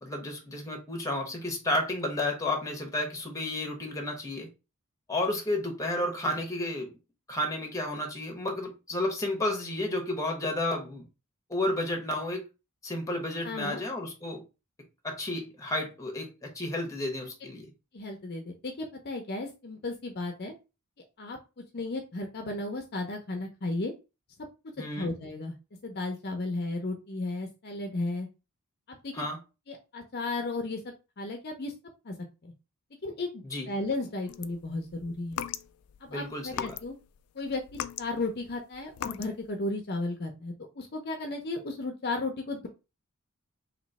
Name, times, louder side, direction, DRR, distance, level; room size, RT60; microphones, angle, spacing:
voice 1, 0.0-4.5 5.1-7.0 7.3-11.1 11.5-12.4 12.8-14.4 15.0-17.7 24.8-25.1 29.1-29.4 33.4-33.7 36.1-36.7, left 1 dB, 15° left, 2 dB, 1.0 m, -32 dB
voice 2, 13.4-13.8 17.9-20.5 21.2-21.4 21.7-23.9 25.0-25.5 25.8-28.3 28.9-29.3 29.7-30.8 31.2-31.7 32.0-32.1 32.4-32.5 33.0-35.4 36.0-36.9 37.3-37.6 38.0-42.7, left 2 dB, 50° left, 3 dB, 0.7 m, -34 dB
sound 1, 34.3-36.0 36.5-37.2 37.5-39.4, left 9 dB, 85° left, 0.3 m, -38 dB
3.1 x 3.0 x 4.0 m, 0.29 s
head